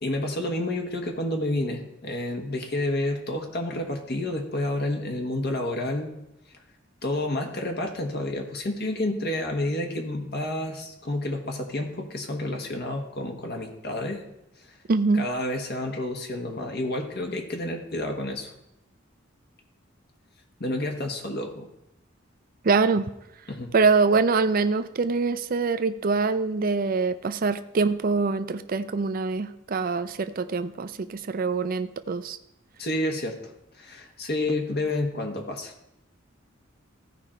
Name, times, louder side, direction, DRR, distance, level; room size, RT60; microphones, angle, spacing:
voice 1, 0.0-6.1 7.0-14.2 15.1-18.5 20.6-21.7 23.5-23.7 32.8-33.4 33.7-35.7, left 1 dB, 55° left, 2 dB, 1.3 m, -29 dB
voice 2, 14.9-15.2 22.6-23.1 23.7-32.4, right 4 dB, 45° right, 11 dB, 0.5 m, -24 dB
15.0 x 5.1 x 4.3 m, 0.85 s
head